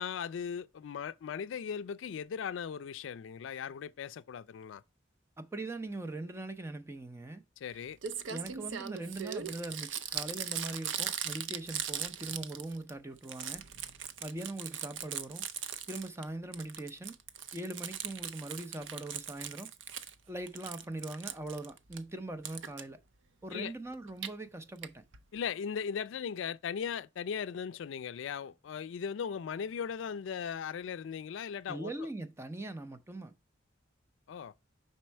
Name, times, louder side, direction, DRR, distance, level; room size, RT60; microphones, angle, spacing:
voice 1, 0.0-4.8 7.6-8.0 23.5-23.7 25.3-32.1 34.3-34.5, left 7 dB, 70° left, 0.3 m, -38 dB
voice 2, 5.4-7.4 8.2-13.6 14.2-15.5 15.9-17.2 17.5-19.7 20.3-23.0 23.4-25.0 31.7-33.3, right 2 dB, 15° right, 0.5 m, -41 dB
Crumpling crinkling, 7.7-7.8 8.0-12.9 13.2-16.2 16.5-20.1 20.5-22.0 22.4-22.8 23.9-24.3 24.8-24.9 25.1-25.2 25.4-25.5, right 8 dB, 70° right, 0.6 m, -39 dB
5.4 x 4.3 x 4.4 m
head